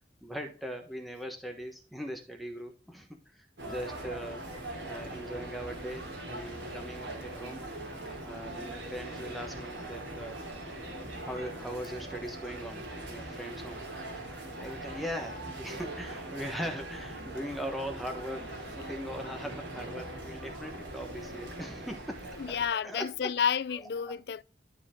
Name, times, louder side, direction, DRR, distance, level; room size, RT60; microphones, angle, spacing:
voice 1, 0.2-4.4 4.8-7.6 8.2-10.4 11.2-13.8 14.1-23.3 23.7-24.2, equal, ahead, 1.2 m, -40 dB
sound 1, 3.6-22.7, right 1 dB, 90° right, 2.9 m, -41 dB
voice 2, 22.3-24.4, left 7 dB, 60° left, 0.3 m, -31 dB
12.0 x 4.4 x 3.7 m
head